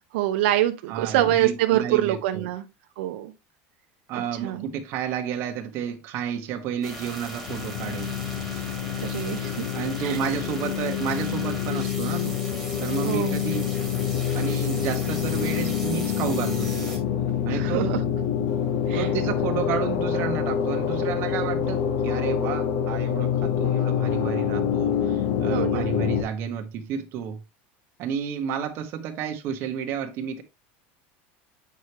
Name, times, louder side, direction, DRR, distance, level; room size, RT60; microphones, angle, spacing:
voice 1, 0.1-2.7 3.0-3.3 4.1-4.6 8.5-8.7 9.0-9.7 10.0-10.2 13.0-13.4 17.5-18.0 18.9-19.1 25.5-25.9, right 13 dB, 80° right, 0.7 m, -25 dB
voice 2, 0.9-2.5 4.1-8.2 9.7-12.4 12.8-13.7 14.3-17.0 17.4-17.9 18.9-27.4 28.0-30.4, right 8 dB, 40° right, 1.1 m, -31 dB
sound 1, 6.8-17.0, right 1 dB, 5° left, 2.3 m, -39 dB
sound 2, 7.5-26.2, left 8 dB, 50° left, 0.8 m, -26 dB
7.3 x 4.7 x 2.9 m
cardioid pair, 165°, 6 cm